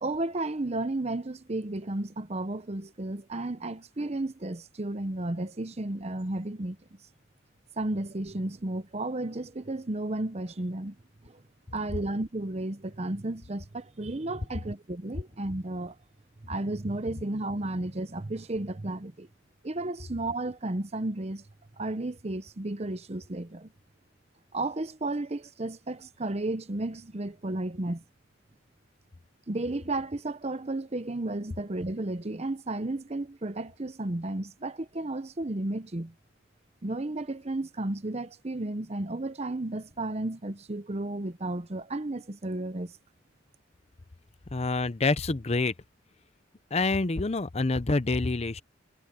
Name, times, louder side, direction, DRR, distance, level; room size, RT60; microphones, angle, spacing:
voice 1, 0.0-6.8 7.8-10.9 11.2-11.4 11.7-16.0 16.4-19.3 19.6-21.4 21.8-23.7 24.5-28.0 29.5-36.1 36.8-42.9, right 2 dB, 35° right, 0.8 m, -33 dB
voice 2, 44.5-45.7 46.7-48.6, left 3 dB, 35° left, 0.6 m, -27 dB
head